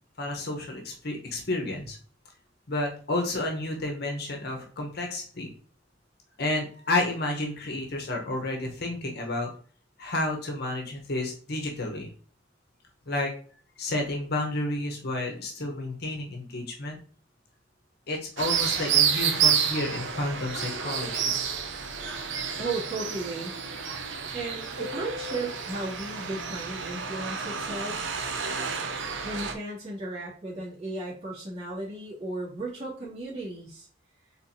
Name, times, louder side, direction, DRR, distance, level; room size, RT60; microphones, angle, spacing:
voice 1, 0.2-2.0 2.7-5.5 6.4-9.5 10.0-12.1 13.1-13.3 13.8-17.0 18.1-21.4 24.0-24.1, left 2 dB, 60° left, 1 dB, 1.1 m, -31 dB
sound 1, 18.4-29.5, right 7 dB, 75° right, 0.7 m, -29 dB
voice 2, 22.6-23.5 24.3-28.1 29.2-33.9, right 2 dB, 35° right, -8 dB, 2.3 m, -35 dB
4.4 x 3.8 x 2.8 m, 0.43 s
head